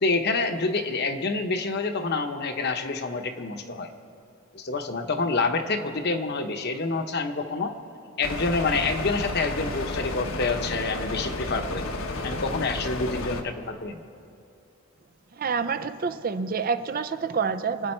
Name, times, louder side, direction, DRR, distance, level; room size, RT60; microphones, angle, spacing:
voice 1, 0.0-3.9 4.5-7.8 8.2-11.8 12.2-14.0, left 3 dB, 55° left, 6 dB, 1.0 m, -27 dB
sound 1, 8.2-13.4, left 2 dB, 85° left, 1.2 m, -32 dB
voice 2, 15.3-17.9, right 5 dB, 45° right, 11 dB, 0.5 m, -28 dB
26.5 x 9.0 x 4.4 m, 2.7 s
head